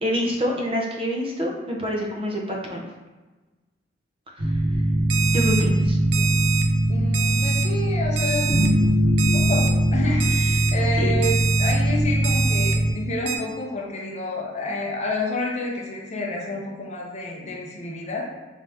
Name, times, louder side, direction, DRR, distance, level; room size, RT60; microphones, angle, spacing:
voice 1, 0.0-2.8 5.3-6.0 11.0-11.1, equal, 30° right, -1 dB, 0.5 m, -26 dB
sound 1, 4.4-12.9, right 1 dB, 65° right, 1.2 m, -21 dB
Alarm, 5.1-5.6 6.1-6.6 7.1-7.6 8.2-8.7 9.2-9.7 10.2-10.7 11.2-11.7 12.2-12.7 13.3-13.4, right 8 dB, 90° right, 0.4 m, -26 dB
voice 2, 6.9-8.5 9.3-18.3, left 2 dB, 40° left, -1 dB, 0.5 m, -29 dB
3.4 x 2.6 x 3.3 m, 1.2 s
head